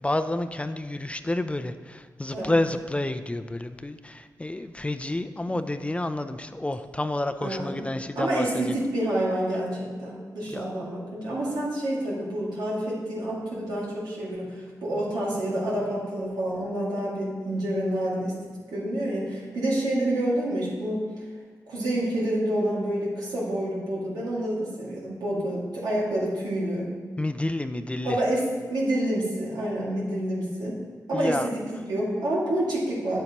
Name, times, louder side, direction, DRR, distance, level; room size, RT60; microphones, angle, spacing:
voice 1, 0.0-8.7 10.5-10.7 27.2-28.2 31.1-31.5, left 1 dB, 15° left, 10 dB, 0.5 m, -29 dB
voice 2, 7.4-7.8 8.2-18.3 18.7-21.0 21.7-26.9 28.0-30.8 31.1-33.2, right 1 dB, 90° right, -5 dB, 2.2 m, -28 dB
9.4 x 7.9 x 3.0 m, 1.5 s
cardioid pair, 50°, 7 cm